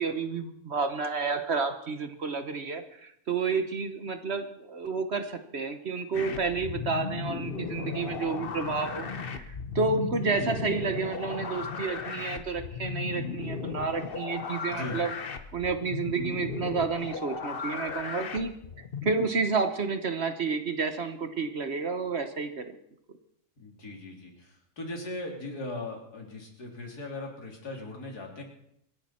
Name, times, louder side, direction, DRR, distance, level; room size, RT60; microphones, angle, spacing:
voice 1, 0.0-9.1 9.3-15.1 15.5-18.5 19.0-22.8, right 4 dB, 45° right, 8 dB, 1.2 m, -30 dB
sound 1, 6.1-19.3, left 5 dB, 40° left, 1.1 m, -36 dB
voice 2, 10.4-10.7 14.7-15.0 23.6-28.4, left 1 dB, 80° left, 1 dB, 3.7 m, -38 dB
26.0 x 10.5 x 4.3 m, 0.76 s
omnidirectional pair, 1.6 m